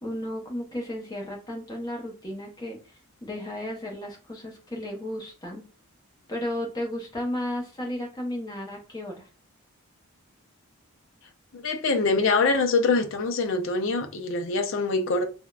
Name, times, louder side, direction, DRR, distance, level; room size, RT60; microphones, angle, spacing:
voice 1, 0.0-2.9 3.2-5.6 6.3-9.3, left 1 dB, 20° left, 0.7 m, -34 dB
voice 2, 11.5-15.3, left 3 dB, 60° left, 0.4 m, -24 dB
3.4 x 2.1 x 2.3 m
head